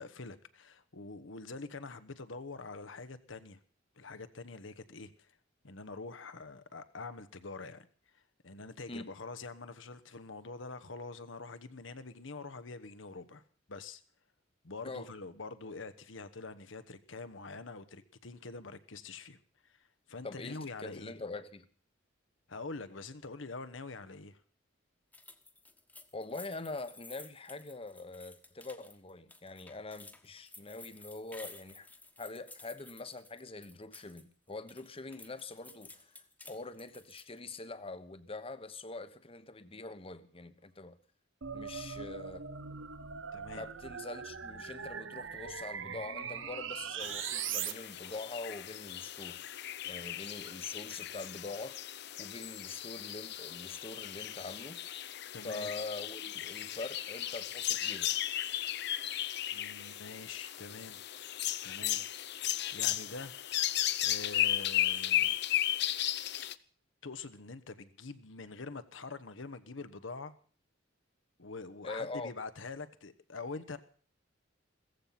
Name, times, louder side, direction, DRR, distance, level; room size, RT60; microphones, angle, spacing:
voice 1, 0.0-3.6 4.0-5.3 5.6-7.9 8.1-13.4 13.7-14.0 14.6-19.4 19.6-21.1 22.5-24.4 43.3-43.6 55.3-55.7 59.5-61.0 61.6-62.2 62.7-63.4 64.0-65.3 67.0-70.3 71.4-73.8, left 3 dB, 75° left, 1.2 m, -45 dB
voice 2, 20.2-21.7 26.1-31.9 32.2-36.2 36.5-41.0 41.5-42.5 43.5-49.4 49.8-51.9 52.2-54.9 55.4-58.1 71.8-72.3, left 3 dB, 30° left, 1.1 m, -44 dB
sound 1, 25.1-34.2 34.5-37.4, left 3 dB, 10° left, 1.3 m, -54 dB
sound 2, 41.4-47.7, right 7 dB, 75° right, 1.0 m, -40 dB
sound 3, 47.0-66.5, left 12 dB, 60° left, 0.7 m, -35 dB
16.0 x 14.5 x 5.8 m
head